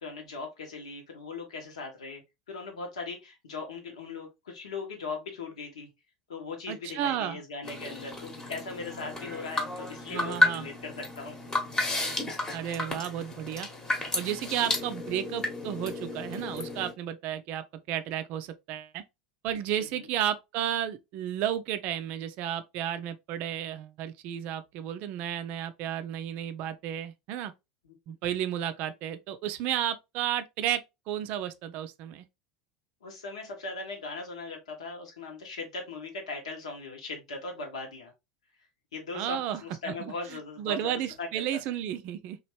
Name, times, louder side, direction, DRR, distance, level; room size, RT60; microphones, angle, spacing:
voice 1, 0.0-2.2 2.5-5.9 6.3-11.4 19.9-20.1 27.8-27.9 33.0-38.1 38.9-40.9 41.2-41.3 41.5-41.6, left 4 dB, 70° left, 1.0 m, -39 dB
voice 2, 6.7-7.4 10.1-10.7 12.5-13.7 14.1-19.0 19.4-27.5 28.1-32.2 39.1-39.6 39.9-40.1 40.6-42.4, right 10 dB, 50° right, 0.4 m, -32 dB
sound 1, 7.6-16.9, left 1 dB, 20° left, 1.0 m, -32 dB
3.0 x 2.4 x 2.9 m
figure-of-eight pair, 80°, 3 cm